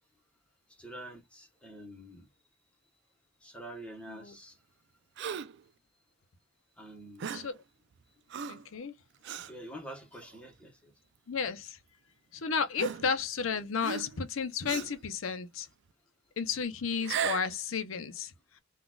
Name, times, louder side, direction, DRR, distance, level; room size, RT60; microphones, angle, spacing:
voice 1, 0.7-2.3 3.4-4.6 6.8-7.4 9.4-10.9, right 1 dB, 5° left, 1.0 m, -47 dB
Gasp, 5.2-5.6 7.2-7.6 8.3-8.7 9.2-9.5 10.2-10.4 11.5-11.6 12.8-13.4 13.8-14.3 14.7-15.0 16.9-17.6, right 8 dB, 60° right, 0.4 m, -36 dB
voice 2, 8.5-8.9 11.3-11.8 12.3-15.7 16.4-18.3, left 6 dB, 80° left, 0.6 m, -33 dB
3.8 x 2.3 x 2.3 m
head